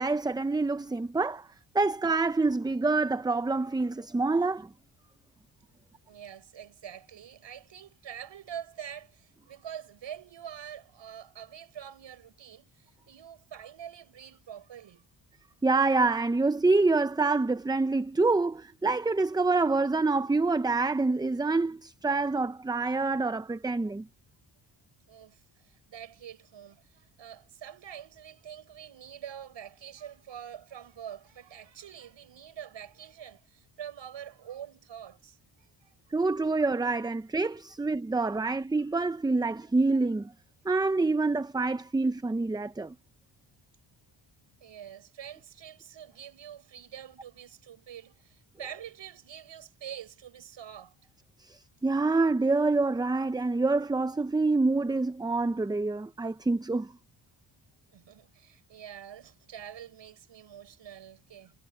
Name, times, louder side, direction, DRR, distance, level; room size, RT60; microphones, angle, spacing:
voice 1, 0.0-1.5 1.7-4.7 15.6-24.0 36.1-40.3 40.7-42.9 51.4-56.9, right 3 dB, 10° right, 0.5 m, -26 dB
voice 2, 6.1-15.0 25.0-35.9 44.6-51.1 57.9-61.5, right 9 dB, 70° right, 6.6 m, -45 dB
cardioid pair, 105°, 45 cm